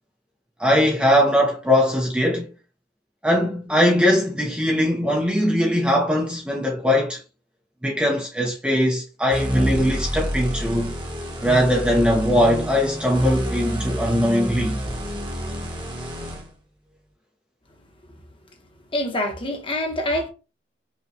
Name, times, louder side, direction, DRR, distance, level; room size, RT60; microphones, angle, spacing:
voice 1, 0.6-2.5 3.2-7.2 7.8-10.9 11.4-14.8, equal, 5° right, 0.5 m, -20 dB
sound 1, 9.3-16.5, equal, 25° right, 0.9 m, -28 dB
voice 2, 18.9-20.3, left 1 dB, 30° left, 0.8 m, -25 dB
5.0 x 2.2 x 2.6 m
head